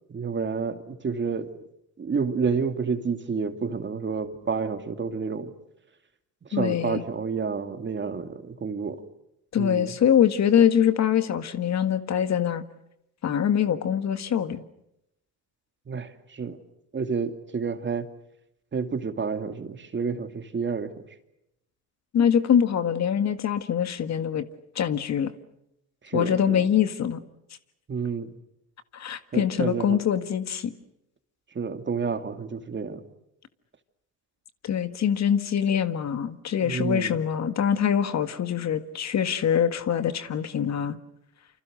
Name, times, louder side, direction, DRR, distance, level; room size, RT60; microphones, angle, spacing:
voice 1, 0.1-1.6 2.0-5.5 6.4-9.0 9.6-9.9 15.9-16.6 16.9-18.1 18.7-21.0 26.0-26.6 27.9-28.3 29.3-30.0 31.5-33.0 36.6-37.2, right 5 dB, 30° right, 8 dB, 2.5 m, -29 dB
voice 2, 6.5-7.0 9.5-12.6 13.2-14.6 22.1-24.5 24.7-25.3 26.1-27.2 28.9-30.7 34.6-41.0, left 8 dB, 45° left, 11 dB, 1.7 m, -24 dB
28.5 x 26.0 x 6.5 m, 0.81 s
supercardioid pair, 90°, 36 cm